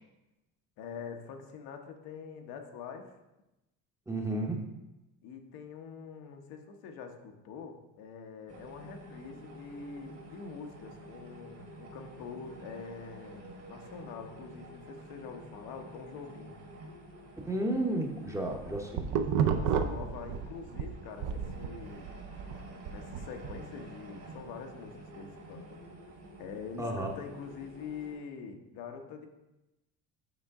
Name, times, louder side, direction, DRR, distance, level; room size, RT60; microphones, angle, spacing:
voice 1, 0.8-3.1 5.2-16.6 19.4-22.1 22.9-25.8 26.4-29.3, left 6 dB, 85° left, 4 dB, 1.0 m, -45 dB
voice 2, 4.1-4.7 17.5-19.1 26.8-27.1, right 1 dB, 10° right, 1 dB, 0.8 m, -32 dB
sound 1, 8.5-28.1, right 1 dB, 40° right, 1.6 m, -50 dB
sound 2, 18.3-20.9 21.2-23.6, right 7 dB, 60° right, 0.6 m, -31 dB
7.1 x 5.6 x 3.6 m, 0.96 s
cardioid pair, 150°, 35 cm